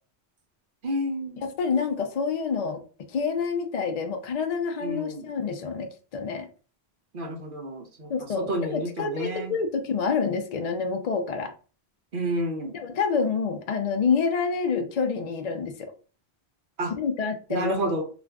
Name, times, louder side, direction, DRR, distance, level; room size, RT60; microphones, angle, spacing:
voice 1, 0.8-1.4 4.8-5.3 7.1-8.1 8.4-9.5 12.1-12.7 16.8-16.9 17.5-18.0, right 1 dB, 55° right, 2 dB, 0.8 m, -30 dB
voice 2, 1.4-2.8 3.1-6.5 8.1-11.5 12.7-15.9 17.0-17.7, left 5 dB, 50° left, 6 dB, 0.5 m, -27 dB
2.4 x 2.4 x 3.3 m, 0.37 s
omnidirectional pair, 1.1 m